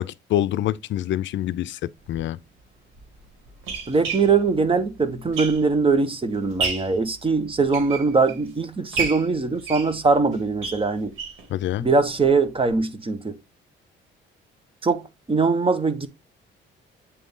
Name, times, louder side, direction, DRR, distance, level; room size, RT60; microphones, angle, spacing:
voice 1, 0.0-2.4 11.5-11.9, left 12 dB, 70° left, 0.5 m, -26 dB
sound 1, 2.0-2.2 3.0-5.9 6.3-7.0 7.5-8.5 8.9-11.5 11.8-11.9 12.2-12.3 12.7-12.8, right 5 dB, 90° right, 2.3 m, -31 dB
voice 2, 3.9-11.1 11.8-13.4 14.8-15.0 15.3-16.1, right 4 dB, 25° right, 1.2 m, -21 dB
8.5 x 3.7 x 3.7 m
cardioid pair, 90°, 20 cm